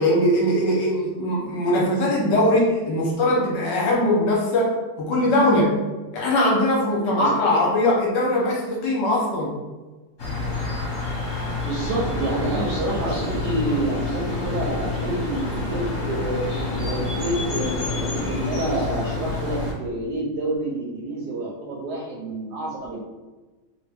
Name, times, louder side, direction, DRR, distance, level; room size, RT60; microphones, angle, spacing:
voice 1, 0.0-5.8 6.1-9.5, left 1 dB, 65° left, -3 dB, 1.2 m, -21 dB
sound 1, 10.2-19.7, left 3 dB, 45° left, 1.2 m, -28 dB
voice 2, 11.6-16.4 16.8-23.0, right 2 dB, 70° right, -4 dB, 1.0 m, -28 dB
sound 2, 11.8-18.8, left 1 dB, 90° left, 0.5 m, -33 dB
3.3 x 2.2 x 3.3 m, 1.2 s
omnidirectional pair, 2.2 m